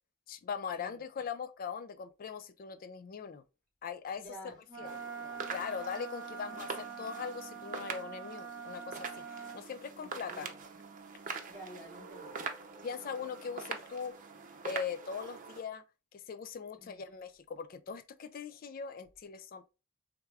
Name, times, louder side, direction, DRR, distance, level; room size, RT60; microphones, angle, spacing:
voice 1, 0.3-3.4 3.8-4.9 5.5-9.2 9.5-10.5 12.8-14.1 14.6-15.8 16.1-19.7, left 6 dB, 45° left, 0.4 m, -41 dB
voice 2, 4.1-5.6 6.5-6.6 10.0-10.6 11.5-12.3 16.8-17.0, equal, 10° left, 2.5 m, -51 dB
Wind instrument woodwind instrument, 4.7-9.6, right 6 dB, 20° right, 1.2 m, -44 dB
sound 1, 4.8-15.6, right 5 dB, 40° right, 0.7 m, -44 dB
4.5 x 3.5 x 3.3 m
head